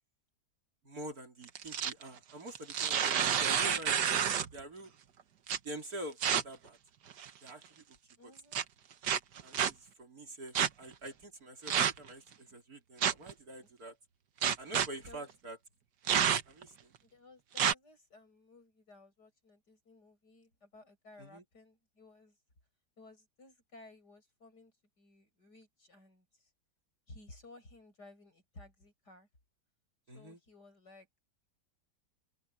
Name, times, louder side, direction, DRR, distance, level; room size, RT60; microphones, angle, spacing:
voice 1, 0.8-4.2 4.5-4.9 5.6-6.8 7.4-8.0 8.2-8.3 9.4-14.0 14.6-15.6 16.5-16.9 21.2-21.4 30.1-30.4, right 1 dB, 60° right, 4.0 m, -46 dB
sound 1, 1.4-2.0 2.5-4.6 5.5-5.6 6.2-6.4 7.1-7.5 8.5-8.6 9.0-9.7 10.5-10.7 11.7-12.1 13.0-13.3 14.4-14.9 16.1-16.6 17.6-17.7, right 8 dB, 75° right, 1.8 m, -29 dB
voice 2, 8.2-8.7 13.6-13.7 15.1-15.3 17.0-22.4 23.0-26.5 27.1-29.3 30.1-31.1, left 2 dB, 70° left, 8.7 m, -57 dB
open air
omnidirectional pair, 1.8 m